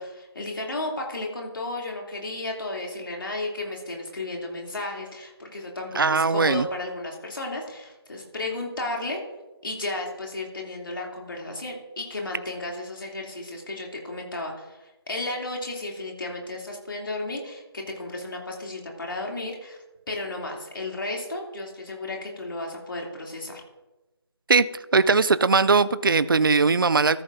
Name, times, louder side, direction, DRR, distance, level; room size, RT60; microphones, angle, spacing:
voice 1, 0.0-9.2 9.6-19.8 20.1-23.6, left 2 dB, 55° left, -1 dB, 3.0 m, -33 dB
voice 2, 6.0-6.7 24.5-24.6 24.9-27.2, right 4 dB, 55° right, 15 dB, 0.4 m, -20 dB
13.5 x 13.0 x 2.7 m, 1.1 s
figure-of-eight pair, 170°, 14 cm